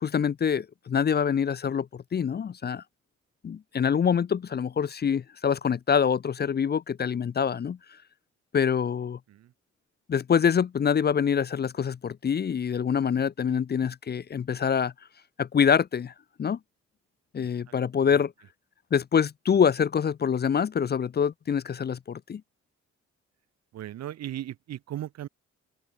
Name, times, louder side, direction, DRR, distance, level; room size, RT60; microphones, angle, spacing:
voice 1, 0.0-2.8 3.4-7.8 8.5-9.2 10.1-14.9 15.4-16.1 16.4-16.6 17.3-18.3 18.9-22.4, left 7 dB, 35° left, 0.5 m, -25 dB
voice 2, 23.7-25.3, right 12 dB, 60° right, 0.6 m, -37 dB
cardioid pair, 65°, 29 cm